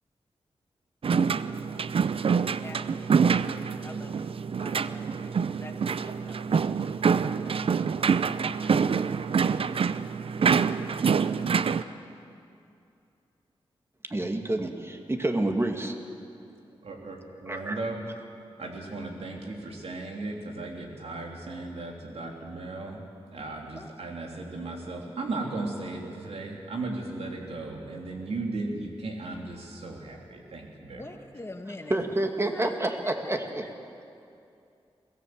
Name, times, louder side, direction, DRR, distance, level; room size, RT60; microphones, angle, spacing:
sound 1, 1.0-11.8, right 6 dB, 65° right, 0.6 m, -26 dB
voice 1, 2.6-4.2 4.6-7.0 23.7-23.9 24.6-25.2 30.9-32.1 32.5-33.3, left 2 dB, 25° left, 5 dB, 1.7 m, -45 dB
voice 2, 14.0-16.0 17.5-17.8 31.9-33.7, right 1 dB, 25° right, 4 dB, 2.2 m, -28 dB
voice 3, 16.8-18.0 18.6-23.0 23.3-31.2, right 2 dB, 80° right, 1 dB, 3.2 m, -36 dB
23.0 x 17.0 x 7.8 m, 2.6 s
cardioid pair, 65°, 10 cm